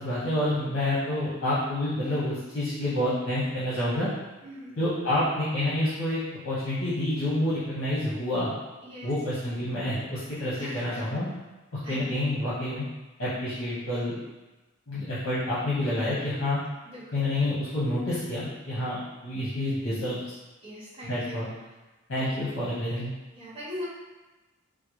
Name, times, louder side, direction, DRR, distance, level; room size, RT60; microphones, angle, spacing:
voice 1, 0.0-4.1 4.8-8.5 9.0-11.3 11.9-12.9 13.2-14.1 14.9-16.6 17.1-20.2 21.0-21.5 22.1-23.1, left 1 dB, 65° left, -10 dB, 0.9 m, -28 dB
voice 2, 4.4-4.8 8.8-9.1 10.6-11.0 11.8-12.1 16.8-17.3 20.6-21.5 22.1-22.3 23.3-23.9, equal, 25° right, -9 dB, 1.1 m, -40 dB
3.6 x 2.1 x 3.0 m, 1.1 s
head